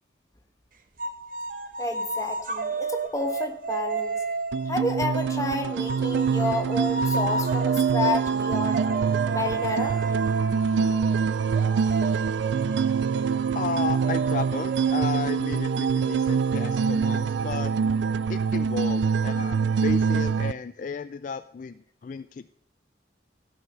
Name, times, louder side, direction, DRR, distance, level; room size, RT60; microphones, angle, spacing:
sound 1, 1.0-5.3 5.9-17.2, right 4 dB, 50° right, 1.0 m, -32 dB
voice 1, 1.8-4.2 4.7-8.9 9.3-10.1, left 2 dB, 20° left, 5 dB, 1.4 m, -30 dB
sound 2, 4.5-20.5, right 6 dB, 80° right, 0.4 m, -25 dB
voice 2, 13.5-17.7 18.3-22.5, left 5 dB, 45° left, 12 dB, 0.3 m, -33 dB
15.5 x 5.7 x 6.6 m, 0.75 s
head